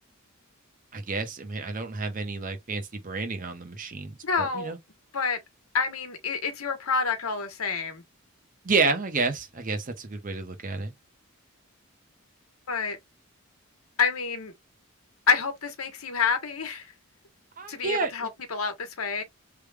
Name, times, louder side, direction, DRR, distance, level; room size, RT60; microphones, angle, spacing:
voice 1, 0.9-4.8 8.6-10.9 17.6-18.3, right 4 dB, 40° right, 0.8 m, -30 dB
voice 2, 4.2-4.7 5.1-5.4 5.7-8.0 12.7-13.0 14.0-14.5 15.3-16.9 17.7-19.2, left 5 dB, 80° left, 1.0 m, -28 dB
3.4 x 2.2 x 3.3 m
head